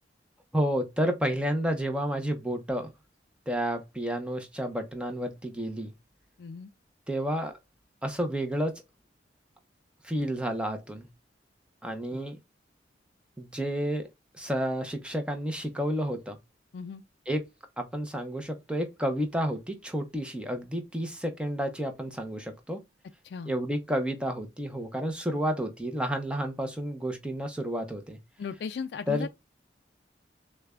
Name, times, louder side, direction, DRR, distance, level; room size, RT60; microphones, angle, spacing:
voice 1, 0.5-2.9 3.5-5.9 7.1-7.5 8.0-8.8 10.0-11.1 11.8-12.4 13.4-14.1 14.3-16.4 17.3-17.4 17.8-22.8 23.5-28.2 29.1-29.3, equal, 5° right, 0.6 m, -30 dB
voice 2, 6.4-6.7 12.1-12.2 16.7-17.0 23.2-23.6 28.4-29.3, left 5 dB, 65° left, 0.3 m, -37 dB
6.4 x 2.2 x 2.3 m
head